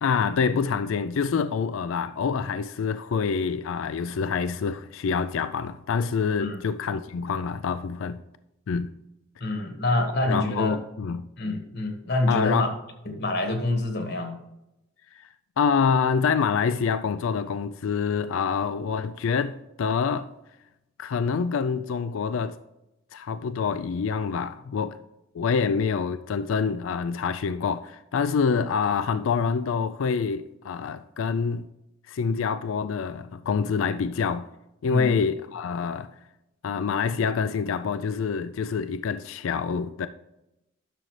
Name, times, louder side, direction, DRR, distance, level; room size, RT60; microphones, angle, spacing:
voice 1, 0.0-8.2 8.7-8.9 10.3-11.3 12.3-12.7 15.1-15.3 15.6-20.3 21.0-22.6 23.1-25.0 25.3-31.6 32.1-34.5 34.8-36.1 36.6-40.1, left 6 dB, 70° left, 0.4 m, -26 dB
voice 2, 9.4-10.8 11.4-12.7 13.0-14.4 34.9-35.1, left 2 dB, 50° left, 1.5 m, -26 dB
11.0 x 6.5 x 3.2 m
head